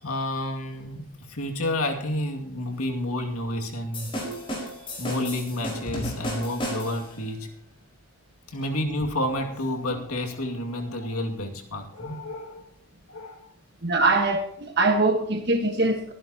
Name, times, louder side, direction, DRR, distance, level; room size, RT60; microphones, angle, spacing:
voice 1, 0.0-4.2 5.0-7.5 8.5-12.7 13.1-13.5, left 1 dB, 85° left, 2.4 m, -30 dB
sound 1, 3.9-7.2, equal, 25° left, 4.8 m, -33 dB
voice 2, 13.8-16.1, right 2 dB, 50° right, 1.5 m, -23 dB
23.5 x 11.0 x 2.9 m
head